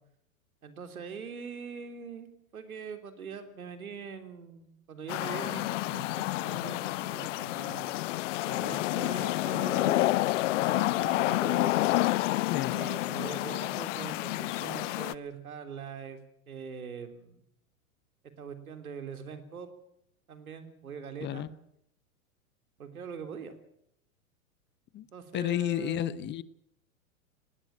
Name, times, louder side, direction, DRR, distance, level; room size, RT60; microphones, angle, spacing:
voice 1, 0.6-8.0 8.5-11.7 12.7-16.2 16.5-17.4 18.4-19.7 20.3-21.5 22.8-23.6 25.1-26.3, right 6 dB, 85° right, 3.5 m, -42 dB
sound 1, 5.1-15.1, left 17 dB, 60° left, 0.8 m, -29 dB
voice 2, 25.3-26.4, left 13 dB, 25° left, 0.8 m, -31 dB
19.0 x 18.0 x 8.8 m
hypercardioid pair, 110°, 42 cm